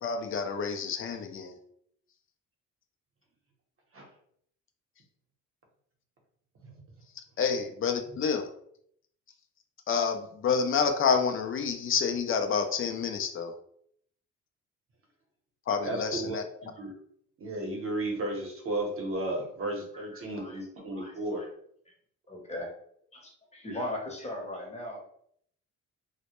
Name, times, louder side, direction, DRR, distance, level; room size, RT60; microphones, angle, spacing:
voice 1, 0.0-1.6 7.4-8.5 9.9-13.5 15.7-16.4, left 6 dB, 45° left, 6 dB, 0.4 m, -28 dB
voice 2, 15.8-16.4 16.7-16.9 17.4-21.4, right 2 dB, 45° right, 1 dB, 0.8 m, -33 dB
voice 3, 20.3-20.7 20.9-21.5 21.9-22.0 22.3-22.7 23.1-25.1, left 1 dB, 20° left, 0 dB, 0.8 m, -39 dB
2.1 x 2.1 x 2.9 m, 0.66 s
cardioid pair, 90°, 30 cm